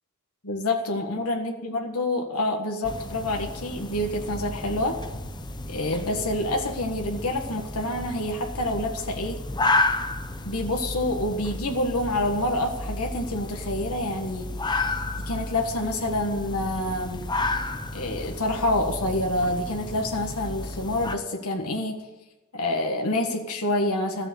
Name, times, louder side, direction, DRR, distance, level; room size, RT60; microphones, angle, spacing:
voice 1, 0.4-5.0 5.7-9.4 10.4-14.5 15.3-17.3 17.9-22.0 22.5-24.3, left 1 dB, 90° left, 2 dB, 1.7 m, -27 dB
sound 1, 2.8-21.1, left 2 dB, 20° left, 0.7 m, -32 dB
14.0 x 7.1 x 8.3 m, 1.0 s
head